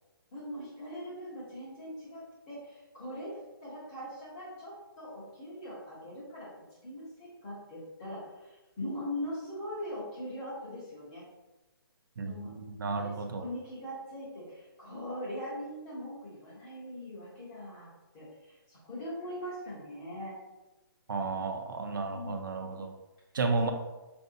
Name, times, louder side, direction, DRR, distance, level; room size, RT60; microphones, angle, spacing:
voice 1, 0.3-6.5 6.8-11.2 12.3-12.5 13.0-17.9 18.1-20.3 22.1-22.3 23.6-23.7, left 1 dB, 15° left, -6 dB, 0.7 m, -41 dB
voice 2, 12.2-13.4 21.1-22.9 23.3-23.7, right 3 dB, 60° right, 4 dB, 0.4 m, -32 dB
4.6 x 2.6 x 2.5 m, 1.1 s
hypercardioid pair, 175°, 12 cm